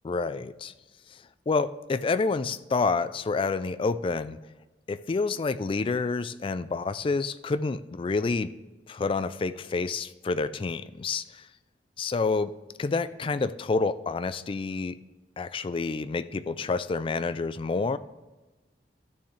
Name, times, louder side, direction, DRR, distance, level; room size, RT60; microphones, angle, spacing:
voice 1, 0.0-0.7 1.5-4.4 4.9-8.5 8.9-11.5 12.0-12.5 12.8-15.0 15.4-18.0, left 4 dB, 30° left, 14 dB, 0.3 m, -28 dB
13.5 x 6.6 x 3.2 m, 1.2 s
head